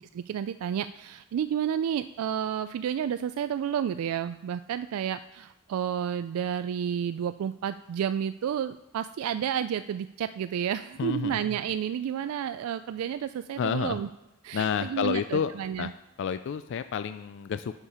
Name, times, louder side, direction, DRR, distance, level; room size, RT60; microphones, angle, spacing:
voice 1, 0.1-14.1 14.4-15.9, right 9 dB, 85° right, 13 dB, 0.3 m, -31 dB
voice 2, 11.0-11.4 13.6-14.0 14.5-15.9 16.2-17.8, left 7 dB, 60° left, 11 dB, 0.3 m, -30 dB
7.2 x 6.6 x 5.5 m, 0.92 s
head